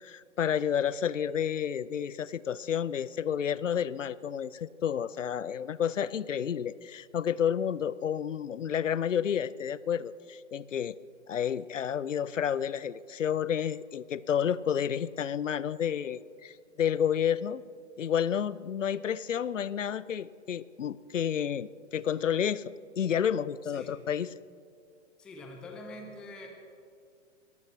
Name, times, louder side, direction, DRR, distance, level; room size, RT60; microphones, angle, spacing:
voice 1, 0.0-11.0 11.3-17.6 18.0-24.3, left 8 dB, 80° left, 19 dB, 0.5 m, -30 dB
voice 2, 23.6-23.9 25.2-26.5, left 2 dB, ahead, 2 dB, 0.4 m, -45 dB
21.5 x 14.5 x 3.1 m, 2.3 s
figure-of-eight pair, 110°, 37 cm